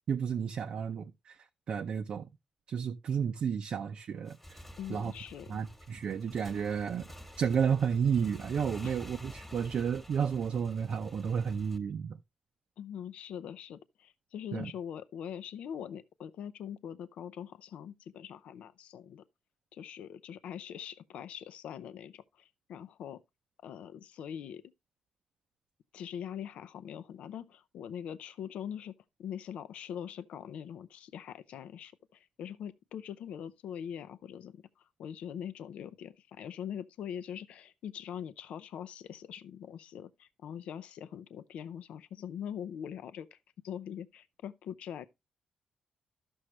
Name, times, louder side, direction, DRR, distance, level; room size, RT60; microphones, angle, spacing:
voice 1, 0.1-1.4 1.7-2.3 2.7-4.4 4.9-5.1 5.5-7.1 7.4-12.1 14.5-14.7, right 7 dB, 60° right, 0.5 m, -32 dB
Motorcycle / Engine, 4.1-11.8, equal, 5° left, 1.3 m, -50 dB
voice 2, 4.8-5.6 8.8-8.9 12.8-19.2 19.7-23.2 23.6-24.6 25.9-28.9 29.2-34.6 35.0-43.4 43.6-45.1, left 9 dB, 90° left, 0.5 m, -42 dB
13.0 x 6.2 x 3.1 m
cardioid pair, 125°, 2 cm